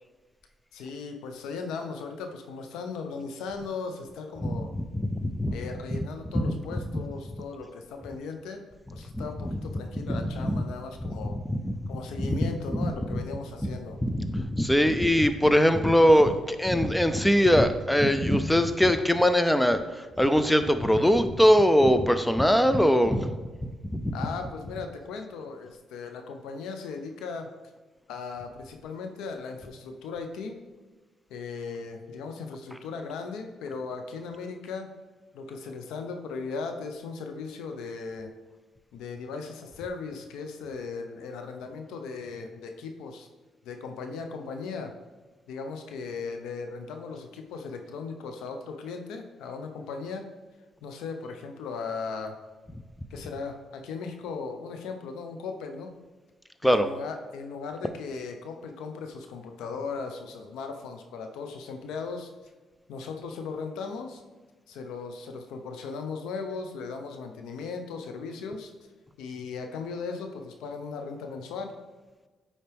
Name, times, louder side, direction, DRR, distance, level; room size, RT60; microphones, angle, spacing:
voice 1, 0.7-4.7 5.5-8.6 8.9-11.4 11.9-14.0 24.1-27.5 28.1-30.6 31.3-34.9 35.3-38.3 38.9-43.3 43.6-44.9 45.5-50.2 50.8-52.4 53.1-55.9 56.6-62.3 62.9-64.2 64.7-68.7 69.2-71.7, left 4 dB, 90° left, 5 dB, 0.7 m, -37 dB
voice 2, 4.4-5.5 5.9-6.0 6.3-7.0 9.1-10.6 11.0-11.1 11.5-13.2 13.6-13.8 14.0-23.4 23.9-24.2 24.8-24.9 32.7-32.8 56.6-56.9, equal, 5° left, 10 dB, 0.5 m, -23 dB
9.2 x 4.3 x 3.5 m, 1.3 s
cardioid pair, 90°, 0 cm